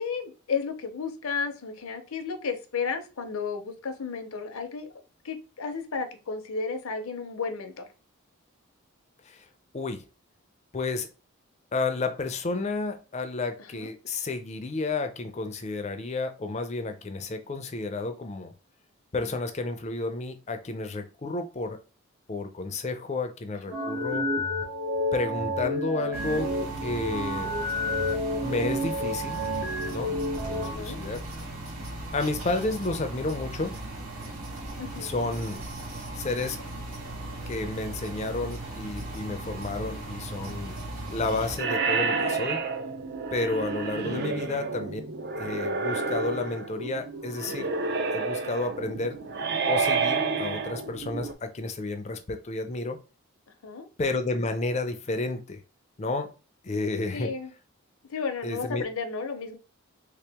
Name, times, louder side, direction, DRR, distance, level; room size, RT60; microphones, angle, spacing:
voice 1, 0.0-4.9 5.2-7.9 13.7-13.9 23.7-23.9 30.6-31.0 34.8-35.1 44.1-44.5 53.6-53.9 57.1-57.5 58.1-59.6, left 5 dB, 75° left, 0.6 m, -33 dB
voice 2, 10.7-11.1 11.7-18.5 19.1-21.8 22.3-24.3 25.1-26.5 26.8-27.5 28.4-29.4 29.9-30.2 30.5-31.2 32.1-33.7 35.0-35.6 36.2-36.6 37.5-40.7 41.1-42.6 43.3-45.0 45.4-47.7 48.1-49.2 49.7-53.0 54.0-55.6 56.0-56.3 56.6-57.3 58.4-58.8, left 3 dB, 30° left, 0.4 m, -31 dB
sound 1, 23.7-30.7, left 1 dB, 65° right, 0.8 m, -30 dB
sound 2, 26.1-41.6, right 1 dB, 90° right, 1.6 m, -38 dB
sound 3, 41.6-51.3, right 4 dB, 50° right, 0.4 m, -30 dB
3.3 x 2.9 x 3.4 m
head